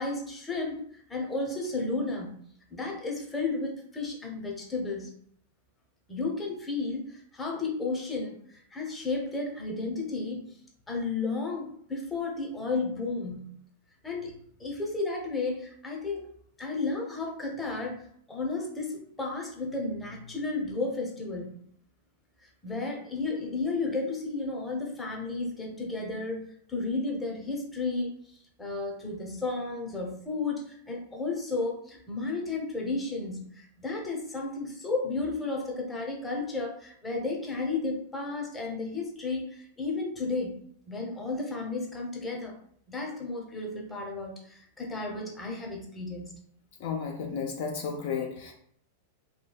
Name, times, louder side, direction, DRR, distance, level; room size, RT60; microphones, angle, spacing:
voice 1, 0.0-2.3 2.7-5.1 6.1-10.5 10.9-13.5 14.0-16.3 16.6-21.6 22.6-28.1 28.6-40.6 40.9-42.6 42.9-46.3, left 3 dB, 15° left, 0 dB, 0.8 m, -33 dB
voice 2, 46.8-48.5, left 6 dB, 60° left, 2 dB, 0.4 m, -33 dB
3.0 x 2.3 x 2.3 m, 0.63 s
hypercardioid pair, 100°, 0 cm